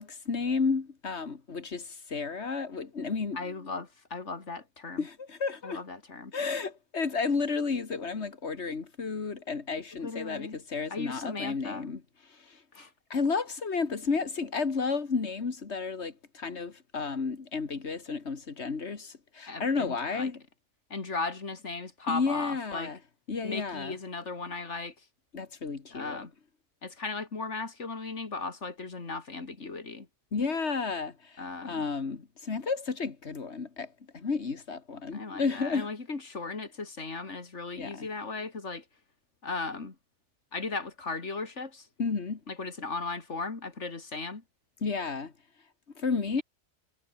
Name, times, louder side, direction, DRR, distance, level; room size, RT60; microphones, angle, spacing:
voice 1, 0.0-3.7 5.0-5.8 6.3-12.0 12.3-12.6 13.1-20.4 22.1-23.0 23.3-24.0 25.3-26.2 30.3-35.9 37.8-38.1 42.0-42.4 44.8-45.3 46.0-46.4, left 4 dB, 70° left, 2.2 m, -32 dB
voice 2, 3.3-5.1 5.6-6.3 10.0-10.6 10.9-11.9 12.7-12.9 19.5-20.3 20.9-22.9 23.4-24.9 25.9-26.3 26.8-30.1 31.4-31.9 35.1-38.8 39.4-40.0 40.5-41.9 42.5-44.4, left 3 dB, 85° left, 3.0 m, -37 dB
omnidirectional pair, 1.2 m